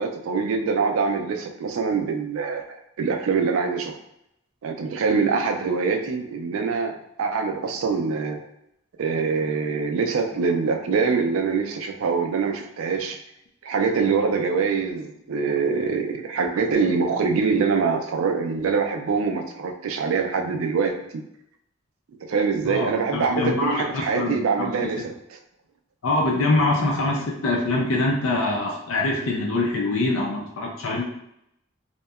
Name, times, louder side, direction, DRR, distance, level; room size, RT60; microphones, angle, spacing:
voice 1, 0.0-3.9 4.6-8.4 9.0-13.2 13.6-21.2 22.3-25.4, right 5 dB, 85° right, 4 dB, 0.4 m, -24 dB
voice 2, 22.6-25.0 26.0-31.0, left 2 dB, 90° left, -2 dB, 0.4 m, -24 dB
2.7 x 2.1 x 2.3 m, 0.78 s
head